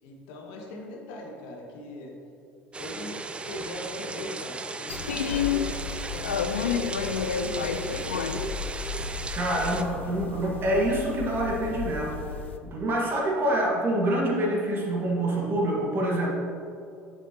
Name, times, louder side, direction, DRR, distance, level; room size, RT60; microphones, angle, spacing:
voice 1, 0.0-2.2 2.8-5.7 6.1-8.6, left 1 dB, 60° left, 0 dB, 1.4 m, -39 dB
sound 1, 2.7-9.8, right 3 dB, 15° right, 0.5 m, -36 dB
sound 2, 4.9-12.6, left 7 dB, 80° left, 0.4 m, -31 dB
voice 2, 9.3-12.2 12.6-16.3, right 1 dB, 35° right, -2 dB, 1.7 m, -26 dB
9.0 x 7.2 x 2.9 m, 2.6 s
figure-of-eight pair, 65°, 6 cm